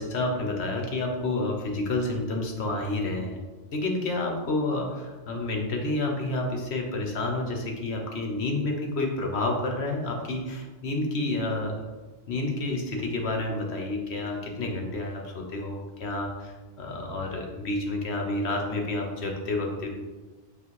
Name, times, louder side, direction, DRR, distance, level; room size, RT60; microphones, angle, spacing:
voice 1, 0.0-3.4 3.7-11.9 12.3-19.9, left 2 dB, 70° left, 1 dB, 1.3 m, -29 dB
8.3 x 3.0 x 4.7 m, 1.2 s
omnidirectional pair, 1.2 m